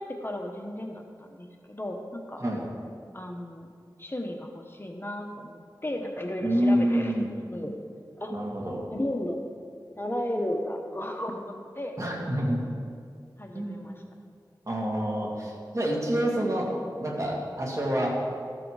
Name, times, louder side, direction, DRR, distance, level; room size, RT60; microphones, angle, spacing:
voice 1, 0.0-2.4 3.1-3.7 4.0-7.1 7.5-7.7 8.2-8.3 8.9-9.4 10.0-12.0 13.4-14.0, left 1 dB, 30° left, 2 dB, 1.0 m, -34 dB
voice 2, 2.4-2.7 6.4-7.3 8.3-8.9 12.0-12.6 13.5-13.8 14.7-18.2, equal, 40° right, -2 dB, 2.2 m, -27 dB
13.5 x 7.7 x 4.8 m, 2.2 s
wide cardioid pair, 55°, 8 cm